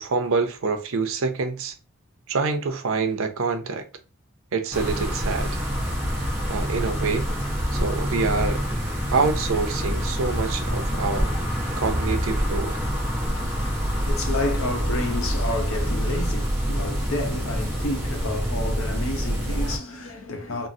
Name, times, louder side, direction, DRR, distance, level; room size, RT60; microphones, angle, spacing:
voice 1, 0.0-1.7 2.3-3.9 4.5-5.5 6.5-7.3 7.7-8.6 9.1-11.3 11.8-12.8, right 4 dB, 75° right, 0.5 m, -26 dB
sound 1, 4.7-19.8, equal, 10° right, 0.7 m, -26 dB
voice 2, 13.3-20.7, left 2 dB, 80° left, 0.7 m, -30 dB
3.7 x 2.0 x 2.6 m
head